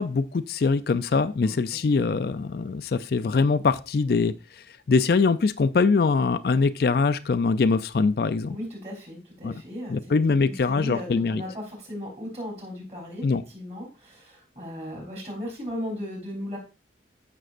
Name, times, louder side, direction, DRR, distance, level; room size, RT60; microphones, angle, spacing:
voice 1, 0.0-4.3 4.9-8.6 9.4-9.6 9.9-11.4 13.2-13.4, left 4 dB, 55° left, 12 dB, 0.4 m, -23 dB
voice 2, 1.4-1.9 8.5-10.2 10.4-13.2 13.5-16.6, equal, 35° right, 0 dB, 3.7 m, -36 dB
14.0 x 6.1 x 2.5 m, 0.31 s
head